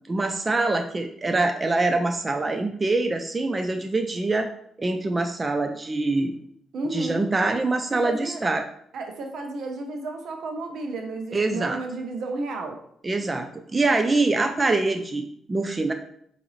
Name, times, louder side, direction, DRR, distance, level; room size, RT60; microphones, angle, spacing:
voice 1, 0.1-4.5 4.8-6.4 6.9-8.7 11.3-11.8 13.0-15.9, right 2 dB, 25° right, 5 dB, 0.3 m, -24 dB
voice 2, 6.7-7.2 8.0-8.4 8.9-12.8, right 3 dB, 70° right, 4 dB, 0.7 m, -32 dB
4.7 x 2.6 x 3.1 m, 0.68 s
cardioid pair, 90°, 0 cm